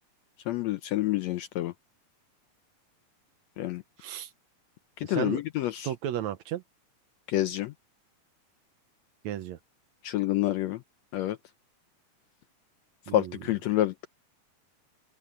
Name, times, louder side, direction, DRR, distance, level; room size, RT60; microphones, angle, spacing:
voice 1, 0.5-1.7 3.6-3.8 5.0-5.9 7.3-7.7 10.0-10.8 11.1-11.4 13.1-14.1, left 14 dB, 75° left, 1.6 m, -28 dB
voice 2, 4.0-4.3 5.0-5.4 5.8-6.6 9.2-9.6 13.1-13.4, right 11 dB, 70° right, 2.0 m, -34 dB
open air
omnidirectional pair, 3.6 m